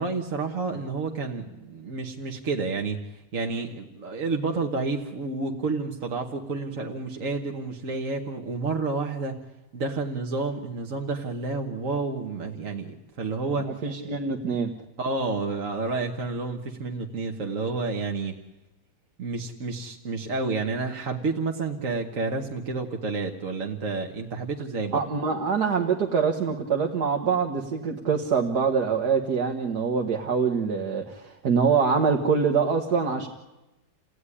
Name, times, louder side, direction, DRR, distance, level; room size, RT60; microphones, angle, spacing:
voice 1, 0.0-9.4 9.7-14.2 15.0-18.4 19.2-25.1, right 3 dB, 55° right, 3 dB, 1.8 m, -30 dB
voice 2, 13.8-14.7 24.9-33.3, right 5 dB, 75° right, 1 dB, 2.0 m, -24 dB
28.5 x 17.0 x 9.9 m, 1.0 s
omnidirectional pair, 1.7 m